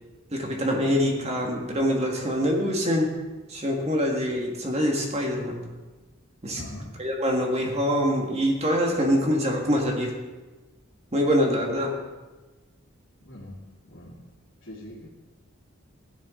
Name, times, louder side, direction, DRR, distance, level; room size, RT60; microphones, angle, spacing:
voice 1, 0.3-3.1 3.5-5.6 6.4-6.6 7.0-10.1 11.1-11.9, equal, 30° right, 0 dB, 1.9 m, -24 dB
voice 2, 6.5-6.9 13.2-13.6 13.8-14.2 14.6-15.1, left 1 dB, 65° left, -8 dB, 2.6 m, -42 dB
15.5 x 10.0 x 3.8 m, 1.2 s
head